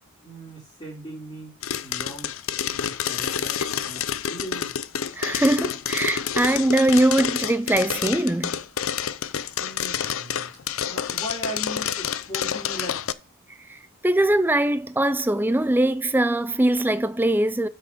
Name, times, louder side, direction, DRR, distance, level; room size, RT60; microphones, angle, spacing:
voice 1, 0.2-1.5 1.8-2.3 2.6-4.7 9.6-10.5 10.9-13.1, right 1 dB, 25° left, 4.1 m, -38 dB
sound 1, 1.6-13.1, left 9 dB, 65° left, 0.5 m, -28 dB
voice 2, 5.1-8.6 13.7-13.8 14.0-17.7, right 1 dB, 10° right, 0.5 m, -21 dB
8.5 x 6.4 x 5.3 m
head